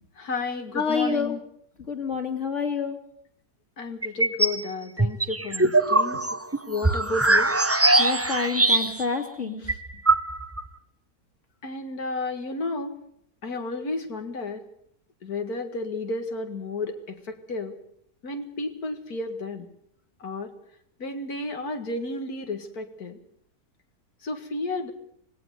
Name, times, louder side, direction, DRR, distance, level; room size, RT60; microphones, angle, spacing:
voice 1, 0.2-1.4 3.8-6.2 6.7-7.5 9.6-9.8 11.6-12.9 13.4-14.6 15.2-17.7 18.2-19.7 20.2-20.5 21.0-23.2 24.2-24.9, left 3 dB, 75° left, 7 dB, 2.4 m, -32 dB
voice 2, 0.7-1.4 1.9-3.0 8.0-9.6, left 5 dB, 50° left, 4 dB, 2.9 m, -27 dB
sound 1, 4.0-4.6 5.0-9.2 9.4-9.5 9.7-10.7, right 2 dB, 15° right, 0.6 m, -21 dB
19.0 x 17.0 x 8.0 m, 0.68 s
omnidirectional pair, 1.6 m